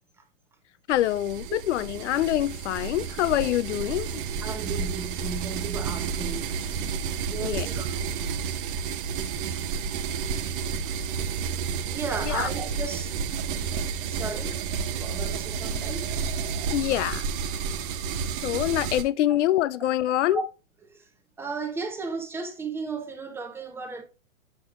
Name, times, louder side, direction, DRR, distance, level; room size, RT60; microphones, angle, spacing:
voice 1, 0.9-4.2 7.4-7.7 12.3-12.5 16.7-17.2 18.4-20.4, left 13 dB, 60° left, 0.5 m, -25 dB
sound 1, 0.9-19.0, right 6 dB, 40° right, 0.8 m, -31 dB
voice 2, 4.4-6.6 7.3-8.1 10.6-10.7 11.9-13.1 14.1-14.6 14.9-16.2 20.3-20.4 20.9-21.1 21.4-24.0, right 4 dB, 5° right, 0.8 m, -35 dB
7.3 x 6.3 x 2.4 m
hypercardioid pair, 130°, 41 cm